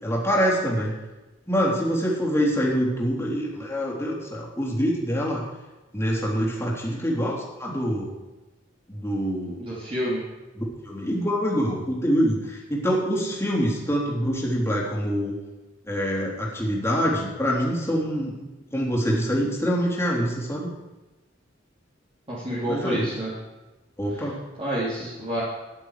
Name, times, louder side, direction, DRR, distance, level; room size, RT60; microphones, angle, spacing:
voice 1, 0.0-1.0 1.5-5.4 5.9-8.1 8.9-9.6 10.5-15.4 15.9-20.7 22.7-23.1 24.0-24.4 25.0-25.1, equal, 15° left, -4 dB, 3.3 m, -25 dB
voice 2, 9.6-10.2 22.3-23.3 24.6-25.4, right 1 dB, 30° right, -8 dB, 3.0 m, -28 dB
14.5 x 10.5 x 4.9 m, 1.1 s
head